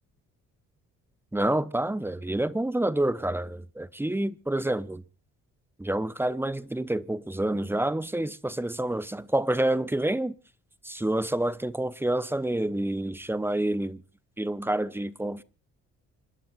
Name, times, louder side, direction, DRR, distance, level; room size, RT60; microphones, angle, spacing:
voice 1, 1.3-5.0 5.8-10.3 10.8-14.0 14.4-15.4, right 1 dB, 5° right, 0.9 m, -28 dB
28.0 x 11.5 x 2.5 m
cardioid pair, 90°, 30 cm